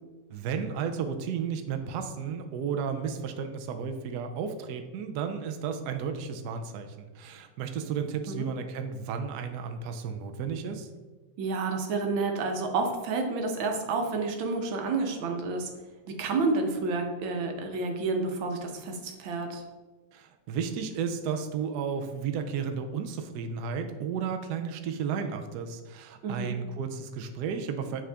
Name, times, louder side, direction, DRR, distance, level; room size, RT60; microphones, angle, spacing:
voice 1, 0.3-10.9 20.1-28.0, right 6 dB, 70° right, 6 dB, 1.0 m, -33 dB
voice 2, 11.4-15.7 16.2-19.6 26.2-26.6, right 3 dB, 85° right, 3 dB, 1.7 m, -30 dB
9.3 x 3.7 x 3.4 m, 1.2 s
omnidirectional pair, 2.1 m